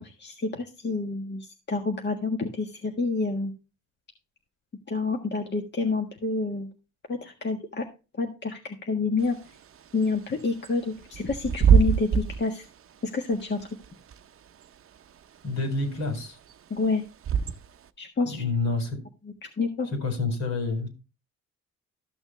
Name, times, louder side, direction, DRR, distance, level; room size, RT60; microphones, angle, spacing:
voice 1, 0.0-3.5 4.9-6.7 7.1-7.9 8.2-9.4 9.9-12.7 13.1-13.7 16.7-17.0 18.0-18.4 19.2-19.9, left 3 dB, 35° left, 3 dB, 1.6 m, -28 dB
Bird / Wind, 9.2-17.9, right 7 dB, 45° right, 0.7 m, -27 dB
voice 2, 15.4-16.4 18.4-19.0 20.0-20.9, left 3 dB, 65° left, 5 dB, 4.4 m, -28 dB
13.5 x 6.3 x 3.2 m, 0.30 s
cardioid pair, 90°, 30 cm